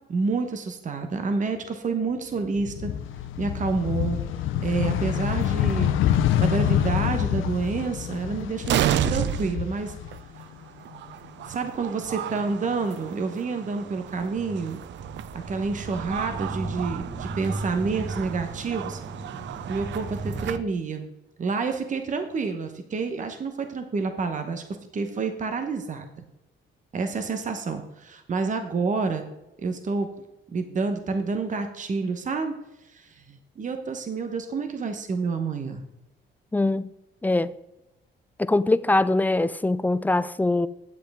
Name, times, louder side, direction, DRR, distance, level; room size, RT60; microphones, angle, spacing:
voice 1, 0.1-2.9 3.4-4.2 4.6-5.9 6.4-9.9 11.5-14.8 15.5-19.0 19.7-21.1 21.4-24.6 24.9-26.2 26.9-29.2 29.6-30.1 30.5-32.5 32.9-35.8, right 4 dB, 40° right, 1.0 m, -28 dB
sound 1, 2.4-10.6 10.9-12.1, left 10 dB, 80° left, 0.6 m, -26 dB
sound 2, 5.3-5.5 6.4-6.5 6.8-6.9 8.1-8.2 8.6-20.6, right 12 dB, 65° right, 0.4 m, -33 dB
sound 3, 13.8-20.6, right 2 dB, 20° right, 1.3 m, -36 dB
voice 2, 36.5-36.9 37.2-37.5 38.4-40.7, left 2 dB, 10° left, 0.3 m, -22 dB
9.3 x 7.7 x 3.5 m
cardioid pair, 90°, 20 cm